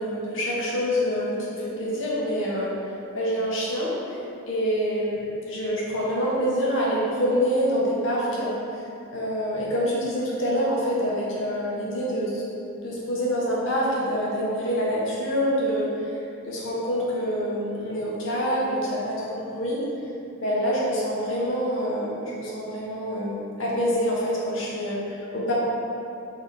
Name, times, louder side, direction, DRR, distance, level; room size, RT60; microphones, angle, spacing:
voice 1, 0.0-2.7 3.1-4.2 4.5-8.8 9.1-12.4 12.8-16.1 16.4-19.8 20.4-25.5, equal, 80° left, -5 dB, 0.9 m, -26 dB
3.9 x 2.8 x 3.3 m, 2.8 s
head